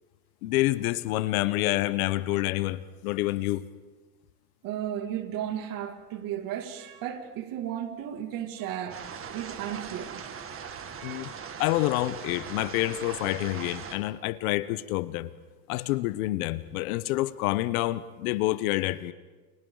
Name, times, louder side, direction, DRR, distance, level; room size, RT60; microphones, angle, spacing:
voice 1, 0.4-3.6 11.0-11.3 11.6-15.3 15.7-19.1, left 17 dB, 65° left, 1.1 m, -28 dB
voice 2, 4.6-9.0 9.3-10.3 11.0-11.3, right 10 dB, 45° right, 2.7 m, -34 dB
sound 1, 8.9-14.0, right 7 dB, 30° right, 2.1 m, -40 dB
30.0 x 28.0 x 4.0 m
supercardioid pair, 125°, 47 cm